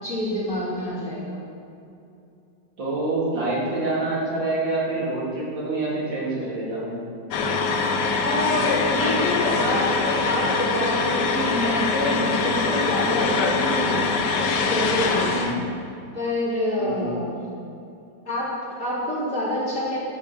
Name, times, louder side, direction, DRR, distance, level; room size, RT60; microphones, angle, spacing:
voice 1, 0.0-1.4 8.2-14.1 14.6-15.4 16.1-17.3 18.3-20.0, left 1 dB, 40° left, -9 dB, 3.9 m, -27 dB
voice 2, 2.8-6.9 15.2-15.6 16.8-17.1, right 2 dB, 75° right, -6 dB, 3.6 m, -26 dB
sound 1, 7.3-15.5, left 4 dB, 65° left, 1.5 m, -23 dB
12.5 x 7.1 x 6.8 m, 2.6 s
omnidirectional pair, 2.0 m